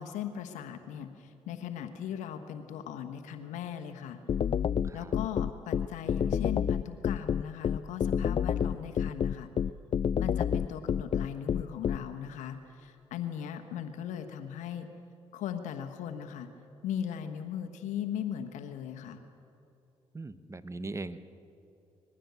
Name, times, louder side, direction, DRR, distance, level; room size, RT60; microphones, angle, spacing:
voice 1, 0.0-4.2 4.9-9.5 10.2-14.9 15.3-16.5 16.8-19.2, left 9 dB, 80° left, 7 dB, 1.3 m, -38 dB
sound 1, 4.3-12.0, left 8 dB, 45° left, 0.4 m, -28 dB
voice 2, 20.1-21.2, right 2 dB, 25° right, 13 dB, 1.0 m, -40 dB
21.0 x 15.5 x 8.2 m, 2.7 s
supercardioid pair, 65°, 12 cm